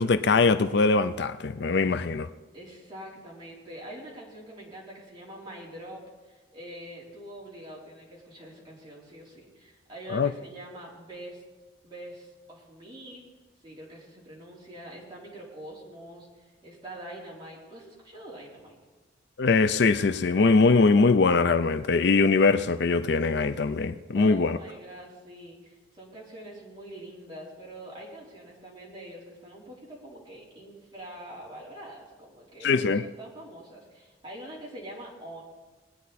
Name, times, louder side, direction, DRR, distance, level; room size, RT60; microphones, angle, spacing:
voice 1, 0.0-2.3 10.1-10.3 19.4-24.6 32.6-33.0, left 4 dB, 60° left, 0.5 m, -22 dB
voice 2, 2.5-6.0 6.3-11.4 11.8-13.2 13.6-18.8 24.1-35.4, right 1 dB, 25° right, 3.8 m, -44 dB
20.5 x 9.4 x 4.2 m
head